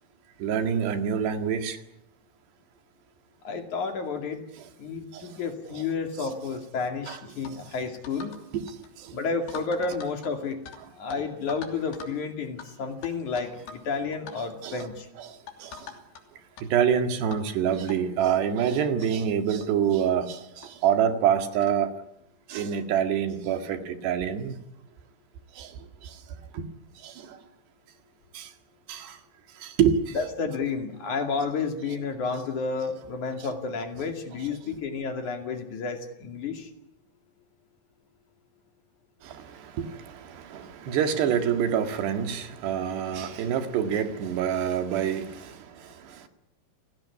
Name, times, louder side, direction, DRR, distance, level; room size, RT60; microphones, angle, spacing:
voice 1, 0.4-1.8 5.1-5.4 5.7-5.8 7.1-7.2 8.5-9.2 14.6-14.9 15.2-15.9 16.6-21.9 22.5-24.6 25.5-26.7 27.0-27.4 28.3-28.5 28.9-29.2 29.6-30.2 39.2-46.3, right 8 dB, 90° right, 7 dB, 4.2 m, -27 dB
voice 2, 3.4-4.4 4.8-8.4 9.1-10.6 11.0-15.1 30.2-36.7, left 4 dB, 50° left, 5 dB, 3.6 m, -31 dB
sound 1, 7.4-7.6 8.0-8.4 8.7-8.9 9.5-10.8 11.1-11.2 11.5-12.2 12.6-12.7 13.0-13.9 14.1-14.4 14.8-15.0 15.5-16.2 16.6-16.7 17.3-17.5 17.9-18.0 18.7-18.8 19.0-19.1 19.6-19.8 20.6-20.7 21.6-21.8, left 6 dB, 75° left, 5.0 m, -43 dB
29.0 x 18.5 x 9.8 m, 0.79 s
omnidirectional pair, 4.7 m